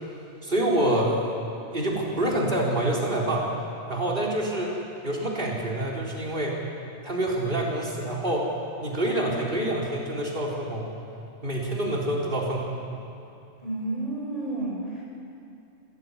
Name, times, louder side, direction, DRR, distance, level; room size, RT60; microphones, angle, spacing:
voice 1, 0.4-1.4 1.7-3.5 3.9-4.7 5.0-6.6 7.0-8.5 8.8-10.9 11.4-12.8, right 1 dB, 50° right, -3 dB, 4.2 m, -26 dB
voice 2, 13.6-15.1, right 2 dB, 35° left, -3 dB, 6.6 m, -31 dB
27.0 x 15.5 x 9.8 m, 2.7 s
omnidirectional pair, 1.2 m